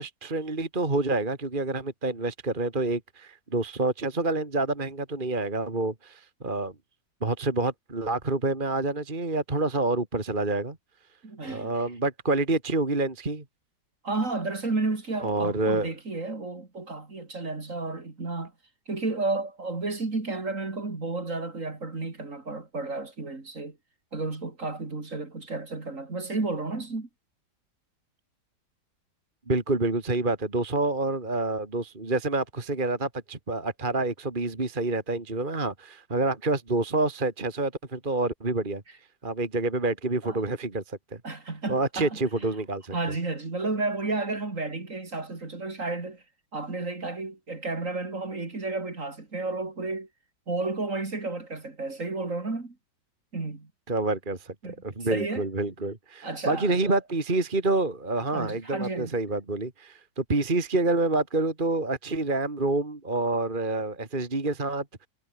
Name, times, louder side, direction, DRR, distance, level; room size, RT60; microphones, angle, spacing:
voice 1, 0.0-6.7 7.2-10.8 11.4-13.4 15.2-15.9 29.5-38.8 39.2-41.2 41.7-43.0 53.9-54.5 54.8-64.8, right 2 dB, 25° right, 2.6 m, -27 dB
voice 2, 11.2-11.8 14.0-18.5 18.9-23.8 24.1-27.1 40.2-40.4 41.2-42.2 42.9-46.2 46.5-50.1 50.5-52.8 53.3-53.7 54.6-55.5 56.2-57.0 58.3-59.1, right 3 dB, 40° right, 3.5 m, -32 dB
omnidirectional pair, 2.1 m